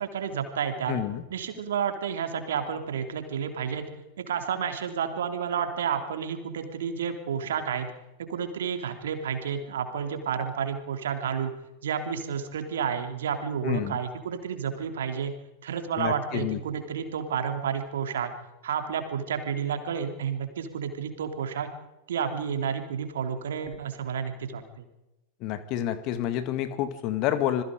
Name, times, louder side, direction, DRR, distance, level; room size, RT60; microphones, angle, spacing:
voice 1, 0.0-1.0 1.3-3.8 4.2-7.9 8.3-11.5 11.8-15.3 15.6-18.3 18.6-21.7 22.1-24.9, right 7 dB, 60° right, 6 dB, 3.1 m, -30 dB
voice 2, 0.9-1.2 13.6-14.0 16.0-16.6 25.4-27.6, left 11 dB, 40° left, 11 dB, 2.0 m, -28 dB
27.0 x 21.0 x 5.2 m, 0.97 s
figure-of-eight pair, 90°, 0 cm